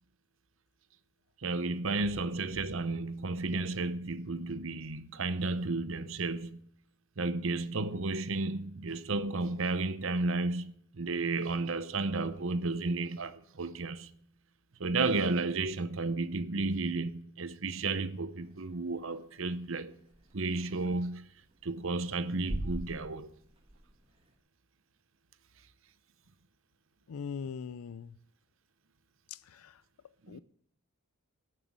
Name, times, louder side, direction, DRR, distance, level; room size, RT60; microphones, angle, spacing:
voice 1, 1.4-6.6 7.2-14.1 14.8-20.0 20.3-21.3 21.6-23.3 30.3-30.4, right 3 dB, 60° right, 0.8 m, -33 dB
sound 1, 18.4-24.3, right 1 dB, 25° right, 1.8 m, -44 dB
voice 2, 27.1-28.1 29.3-29.8 30.3-30.4, left 6 dB, 85° left, 0.4 m, -41 dB
11.5 x 7.7 x 7.3 m
head